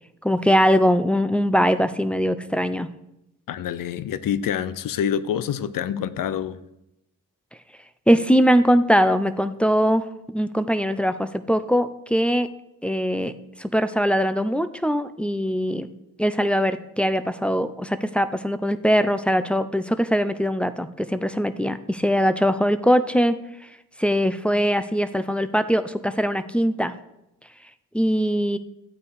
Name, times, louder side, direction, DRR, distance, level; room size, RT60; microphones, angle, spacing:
voice 1, 0.2-2.9 8.1-12.5 12.8-13.3 13.6-15.9 16.2-23.4 24.0-26.9 27.9-28.6, equal, 5° left, 10 dB, 0.7 m, -21 dB
voice 2, 3.5-6.6, left 9 dB, 80° left, 15 dB, 0.7 m, -26 dB
12.5 x 8.3 x 4.9 m, 0.88 s
cardioid pair, 65°, 33 cm